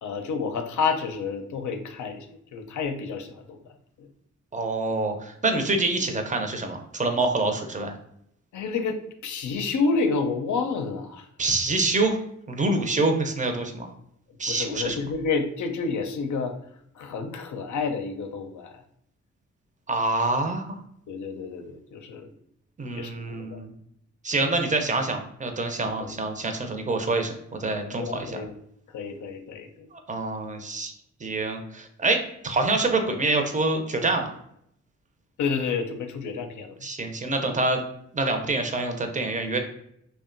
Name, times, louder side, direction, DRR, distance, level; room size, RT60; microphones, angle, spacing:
voice 1, 0.0-3.3 4.0-4.1 8.5-9.0 9.2-11.3 14.5-16.5 17.0-18.7 21.1-22.3 22.9-23.6 24.5-24.6 26.0-26.1 27.9-28.5 28.9-29.9 35.4-36.7, left 4 dB, 70° left, 6 dB, 0.5 m, -29 dB
voice 2, 4.5-7.9 11.4-12.2 12.5-13.9 14.4-15.0 19.9-20.8 22.8-23.7 24.2-27.3 27.6-28.4 29.9-30.9 31.2-34.3 36.8-37.8 38.1-39.6, right 2 dB, 25° right, 5 dB, 0.5 m, -26 dB
2.6 x 2.2 x 2.5 m, 0.72 s
supercardioid pair, 45°, 31 cm